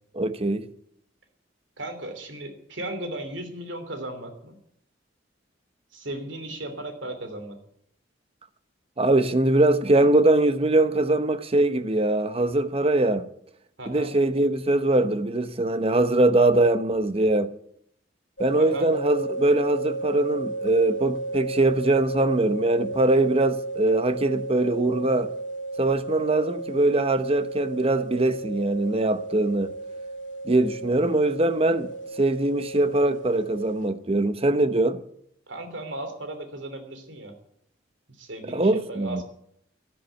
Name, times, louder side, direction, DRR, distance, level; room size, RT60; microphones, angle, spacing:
voice 1, 0.1-0.7 9.0-13.3 13.9-17.5 18.4-25.3 25.8-29.7 30.4-31.9 32.2-35.0 38.5-39.2, right 2 dB, 30° right, 1.0 m, -22 dB
voice 2, 1.8-4.6 5.9-7.6 13.8-14.1 18.6-18.9 35.5-37.3 38.2-39.2, right 1 dB, 75° right, 3.1 m, -36 dB
sound 1, 18.4-33.9, right 2 dB, 75° left, 2.3 m, -34 dB
13.0 x 12.5 x 8.2 m
head